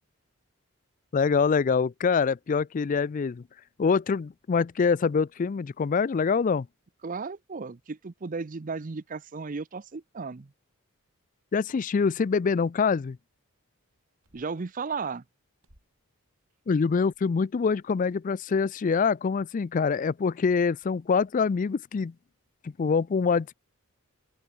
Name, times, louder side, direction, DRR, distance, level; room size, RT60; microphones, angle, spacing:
voice 1, 1.1-3.4 3.8-6.7 11.5-13.2 16.7-22.1 22.6-23.5, left 5 dB, 35° left, 0.3 m, -25 dB
voice 2, 7.0-10.5 14.3-15.2, right 4 dB, 35° right, 0.5 m, -35 dB
sound 1, 14.2-14.7 15.6-16.1 16.8-17.4 18.1-18.3 18.6-18.8 19.4-19.5 20.8-21.0, equal, 75° right, 7.8 m, -65 dB
open air
head